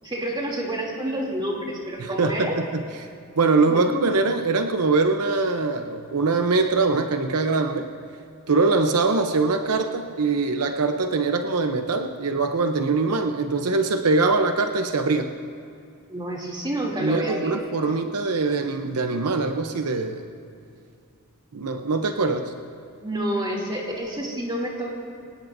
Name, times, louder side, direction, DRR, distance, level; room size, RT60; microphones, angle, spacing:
voice 1, 0.0-2.6 3.7-3.8 16.1-18.0 23.0-24.9, right 1 dB, 20° right, -2 dB, 2.8 m, -29 dB
voice 2, 2.0-2.8 3.4-7.9 8.5-15.3 17.0-20.3 21.5-22.5, right 3 dB, 85° right, 6 dB, 0.7 m, -23 dB
24.0 x 18.5 x 2.6 m, 2.4 s
head